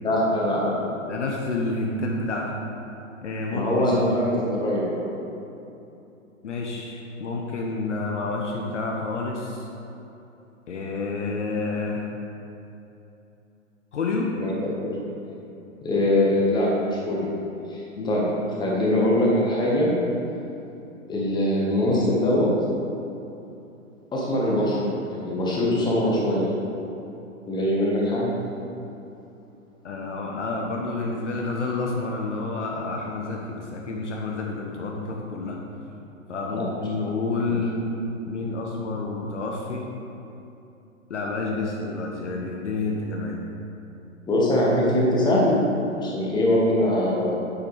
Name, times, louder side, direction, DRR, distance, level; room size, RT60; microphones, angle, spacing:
voice 1, 0.0-0.8 3.5-5.0 14.4-14.5 14.8-14.9 15.8-17.3 17.7-18.2 18.6-19.9 21.1-22.5 24.1-26.5 27.5-28.3 36.5-36.6 44.3-45.6 46.0-47.3, left 1 dB, 10° left, -4 dB, 1.5 m, -22 dB
voice 2, 1.1-2.5 3.2-4.3 6.4-9.7 10.7-12.1 13.9-14.3 18.0-18.2 29.8-35.9 36.3-37.9 38.3-39.9 41.1-43.4, left 3 dB, 60° left, 0 dB, 1.2 m, -29 dB
9.2 x 9.0 x 3.4 m, 2.9 s
figure-of-eight pair, 120°, 41 cm